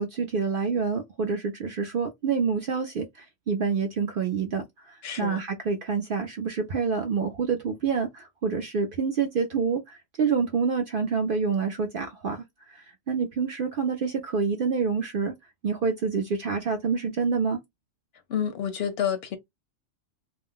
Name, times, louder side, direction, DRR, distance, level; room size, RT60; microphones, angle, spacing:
voice 1, 0.0-15.3 15.6-17.6, right 5 dB, 65° right, 0.5 m, -27 dB
voice 2, 5.0-5.4 18.3-19.4, left 8 dB, 65° left, 0.7 m, -29 dB
2.3 x 2.1 x 3.6 m
omnidirectional pair, 1.3 m